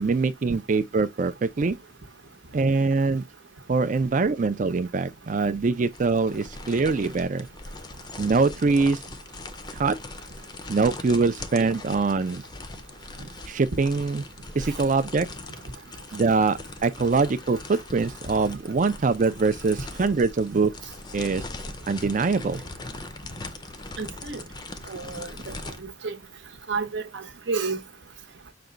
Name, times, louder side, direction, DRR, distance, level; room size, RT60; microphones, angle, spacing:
voice 1, 0.0-1.8 2.5-3.2 3.7-7.5 8.2-9.0 9.8-10.0 10.7-12.4 13.5-14.2 14.5-15.3 16.1-20.7 21.1-21.4 21.9-22.6, right 4 dB, 45° right, 0.4 m, -23 dB
sound 1, 5.9-25.8, left 2 dB, 25° left, 0.5 m, -41 dB
voice 2, 24.0-24.4 24.9-25.5 26.0-26.2 26.7-27.8, right 4 dB, 75° right, 0.9 m, -30 dB
5.9 x 2.2 x 3.8 m
head